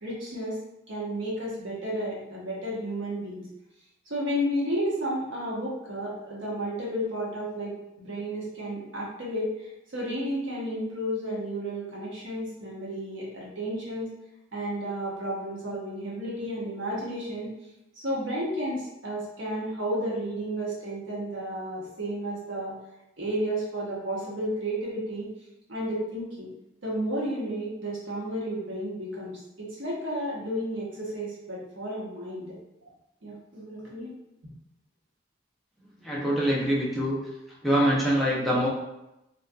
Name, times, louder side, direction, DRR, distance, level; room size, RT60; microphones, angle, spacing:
voice 1, 0.0-0.5 0.9-3.5 4.1-14.1 14.5-17.5 18.0-22.7 23.2-25.3 25.7-26.5 26.8-32.5 33.2-34.1, equal, 90° right, -5 dB, 0.9 m, -32 dB
voice 2, 36.0-37.2 37.6-38.7, equal, ahead, -7 dB, 0.5 m, -24 dB
2.6 x 2.2 x 2.2 m, 0.91 s
head